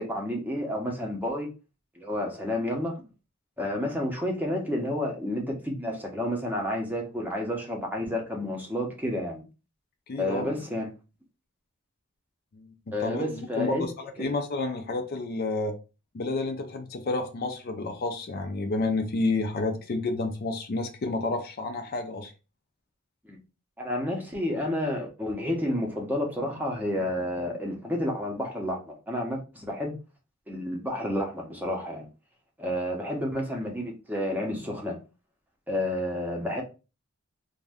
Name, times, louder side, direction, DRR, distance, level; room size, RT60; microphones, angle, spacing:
voice 1, 0.0-1.5 2.0-3.0 3.6-9.4 10.2-10.9 12.9-13.9 14.2-14.3 23.2-23.4 23.8-29.9 30.5-32.1 32.6-35.0 35.7-36.6, left 1 dB, 10° right, 0.6 m, -30 dB
voice 2, 10.1-10.5 12.5-12.7 13.0-15.8 16.1-22.3, left 3 dB, 45° left, 0.4 m, -30 dB
2.6 x 2.1 x 3.4 m
head